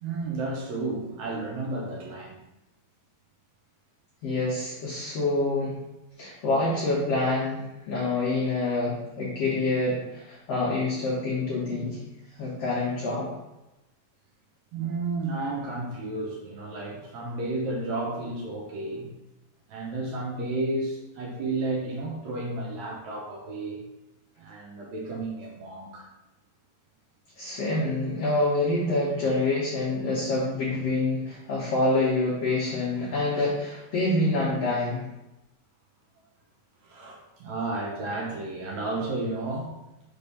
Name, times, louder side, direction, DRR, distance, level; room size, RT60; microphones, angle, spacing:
voice 1, 0.0-2.4 14.7-19.1 19.7-23.8 24.4-26.1 36.8-39.7, right 2 dB, 75° right, -2 dB, 1.6 m, -32 dB
voice 2, 4.2-5.8 6.2-12.0 12.4-13.3 27.4-35.1, left 2 dB, 80° left, -6 dB, 1.4 m, -26 dB
5.1 x 3.5 x 5.3 m, 0.96 s
omnidirectional pair, 4.2 m